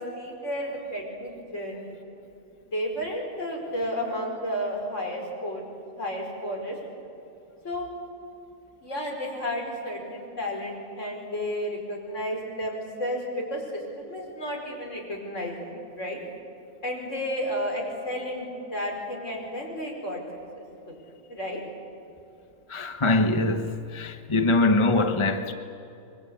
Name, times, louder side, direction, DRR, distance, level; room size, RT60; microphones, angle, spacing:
voice 1, 0.0-1.9 2.7-5.6 6.0-6.8 7.6-7.9 8.8-16.2 16.8-20.2 20.6-21.0 21.3-21.6, equal, 65° left, 5.3 m, -32 dB
voice 2, 22.7-25.5, left 2 dB, 25° left, 1.0 m, -23 dB
26.0 x 23.0 x 8.5 m
omnidirectional pair, 1.4 m